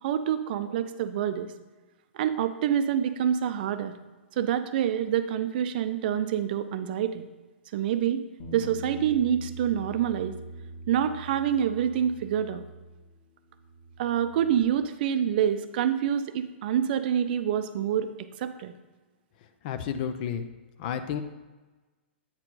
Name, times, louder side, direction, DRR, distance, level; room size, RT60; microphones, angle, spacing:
voice 1, 0.0-1.5 2.1-3.9 4.4-7.3 7.7-8.2 8.5-10.3 10.9-12.6 14.0-18.1 18.4-18.7, right 9 dB, 50° right, 10 dB, 0.5 m, -26 dB
Bass guitar, 8.4-13.2 13.5-14.6, right 1 dB, 65° left, 1.8 m, -43 dB
voice 2, 19.6-20.5 20.8-21.2, left 8 dB, 45° left, 9 dB, 0.6 m, -31 dB
8.6 x 4.3 x 4.1 m, 1.2 s
hypercardioid pair, 115°, 6 cm